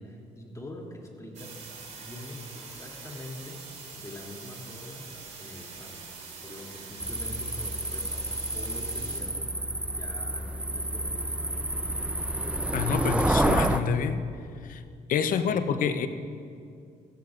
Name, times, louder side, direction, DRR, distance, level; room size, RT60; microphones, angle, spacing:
voice 1, 0.0-3.6 3.9-5.1 5.4-6.1 6.4-9.5 9.8-11.7 15.4-15.6, left 1 dB, 20° left, -1 dB, 2.9 m, -44 dB
sound 1, 1.3-9.2, right 4 dB, 50° right, 3.2 m, -44 dB
sound 2, 7.0-13.8, right 1 dB, 10° right, 0.6 m, -29 dB
voice 2, 12.7-14.3 14.7-14.8 15.1-16.1, left 6 dB, 65° left, 10 dB, 0.8 m, -27 dB
16.5 x 14.5 x 2.6 m, 2.3 s
supercardioid pair, 65°, 15 cm